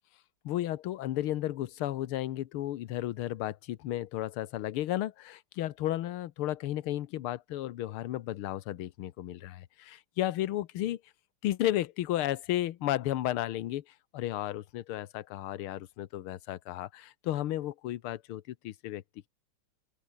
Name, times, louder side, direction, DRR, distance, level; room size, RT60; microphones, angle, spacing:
voice 1, 0.5-11.0 11.4-13.8 14.1-19.0, left 13 dB, 75° left, 1.8 m, -33 dB
open air
omnidirectional pair, 2.4 m